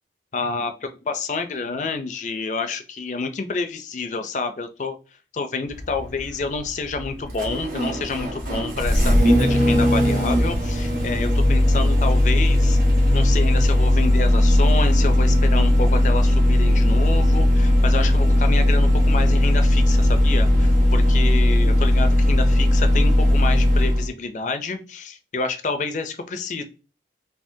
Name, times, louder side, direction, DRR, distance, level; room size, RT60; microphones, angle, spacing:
voice 1, 0.3-4.9 5.3-12.8 13.1-26.6, left 4 dB, 45° left, 8 dB, 0.4 m, -28 dB
Engine starting, 5.7-24.1, left 1 dB, 50° right, 1.0 m, -18 dB
3.5 x 2.7 x 2.6 m, 0.33 s
head